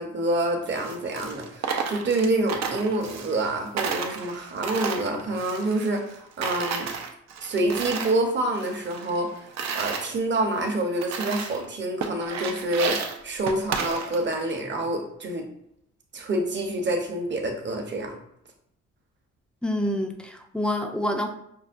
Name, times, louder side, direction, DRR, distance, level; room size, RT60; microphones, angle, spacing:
voice 1, 0.0-6.9 7.4-9.3 9.7-15.5 16.1-18.2, right 1 dB, 40° right, 3 dB, 0.9 m, -27 dB
Coin (dropping), 0.7-3.5 3.8-6.2 6.4-8.2 8.5-10.1 10.6-10.7 11.0-11.7 12.0-14.4, right 6 dB, 60° right, 0.6 m, -32 dB
voice 2, 19.6-21.3, left 1 dB, 5° left, 3 dB, 0.5 m, -27 dB
5.5 x 2.1 x 2.5 m, 0.73 s
cardioid pair, 90°, 30 cm